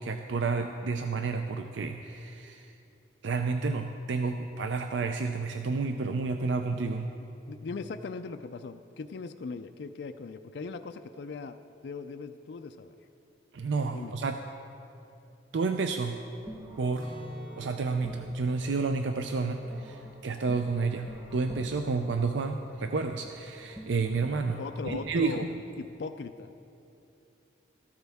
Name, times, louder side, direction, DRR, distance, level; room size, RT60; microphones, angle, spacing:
voice 1, 0.0-2.7 3.2-7.1 13.5-14.4 15.5-16.2 16.8-17.1 17.6-25.5, right 4 dB, 75° right, 6 dB, 0.5 m, -30 dB
voice 2, 7.5-11.6 11.8-12.9 13.9-14.1 24.6-25.5 25.8-26.5, left 4 dB, 65° left, 7 dB, 0.4 m, -39 dB
sound 1, 15.9-25.3, right 1 dB, 15° right, 1.4 m, -49 dB
Acoustic guitar, 16.9-22.8 23.1-23.3 23.8-24.3, equal, 60° right, 3.3 m, -51 dB
13.5 x 13.5 x 3.5 m, 2.8 s
head